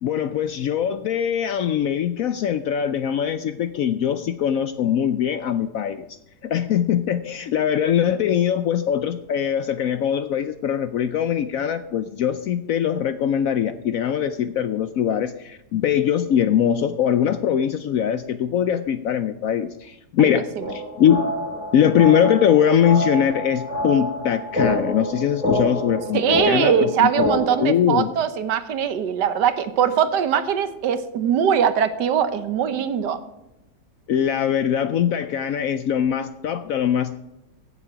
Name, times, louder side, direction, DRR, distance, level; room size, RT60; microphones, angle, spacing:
voice 1, 0.0-6.1 6.4-21.2 21.7-27.3 27.6-28.1 34.1-37.2, left 9 dB, 70° left, 11 dB, 0.8 m, -22 dB
voice 2, 20.2-20.6 26.1-33.2, right 8 dB, 75° right, 12 dB, 1.5 m, -21 dB
Crub Dub (Chords), 20.6-27.6, left 1 dB, 20° left, 3.3 m, -26 dB
15.5 x 7.1 x 4.9 m, 0.92 s
omnidirectional pair, 1.9 m